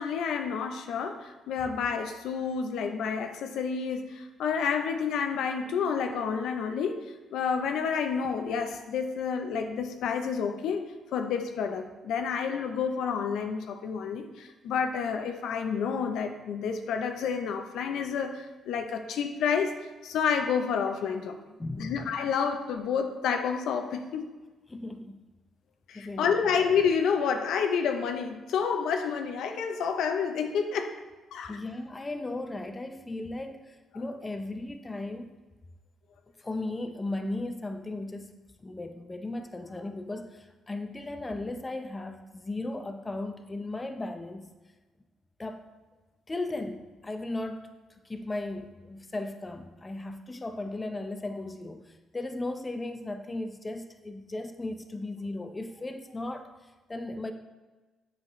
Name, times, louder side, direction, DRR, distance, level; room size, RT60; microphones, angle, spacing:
voice 1, 0.0-7.0 7.3-10.8 11.1-19.8 20.0-21.4 21.8-24.3 25.9-30.9 31.3-31.6, left 6 dB, 80° left, 6 dB, 0.6 m, -29 dB
voice 2, 21.6-22.1 24.7-25.2 25.9-26.6 31.5-35.3 36.4-38.3 38.6-44.5 45.4-45.6 46.3-57.3, left 2 dB, 20° left, 6 dB, 0.6 m, -36 dB
7.5 x 5.6 x 3.1 m, 1.2 s
cardioid pair, 90°, 0 cm